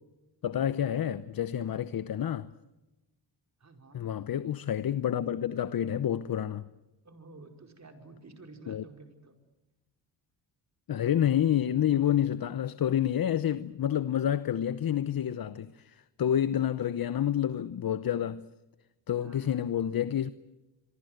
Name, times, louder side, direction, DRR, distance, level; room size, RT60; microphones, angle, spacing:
voice 1, 0.4-2.5 3.9-6.6 8.7-8.8 10.9-18.5 19.1-20.3, left 10 dB, 50° left, 0.9 m, -29 dB
voice 2, 3.6-4.0 7.0-9.3 19.2-19.7, right 3 dB, 35° right, 5.0 m, -51 dB
27.0 x 23.0 x 8.0 m
cardioid pair, 80°, 46 cm